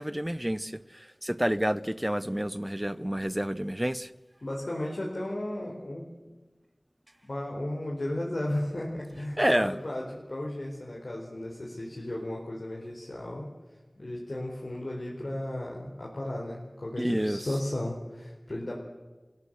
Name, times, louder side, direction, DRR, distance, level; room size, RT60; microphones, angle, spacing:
voice 1, 0.0-4.1 9.4-9.8 17.0-17.5, equal, 10° right, 0.8 m, -29 dB
voice 2, 4.4-6.1 7.2-13.5 13.9-18.8, left 1 dB, 60° left, 4.4 m, -34 dB
28.5 x 16.5 x 7.7 m
wide cardioid pair, 55°, 0 cm